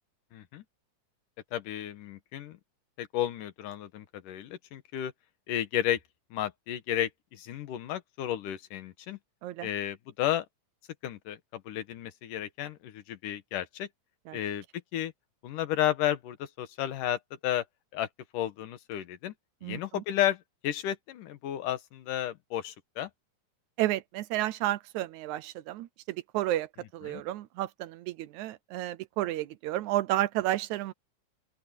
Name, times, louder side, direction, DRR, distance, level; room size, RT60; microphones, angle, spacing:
voice 1, 0.3-0.6 1.5-2.6 3.0-5.1 5.5-6.0 6.3-9.2 9.6-10.5 11.0-13.9 14.3-14.6 14.9-15.1 15.4-17.7 17.9-18.1 18.3-19.3 19.6-23.1 27.0-27.2, left 11 dB, 90° left, 3.0 m, -32 dB
voice 2, 19.6-20.0 23.8-30.9, right 15 dB, 75° right, 2.0 m, -32 dB
open air
omnidirectional pair, 3.6 m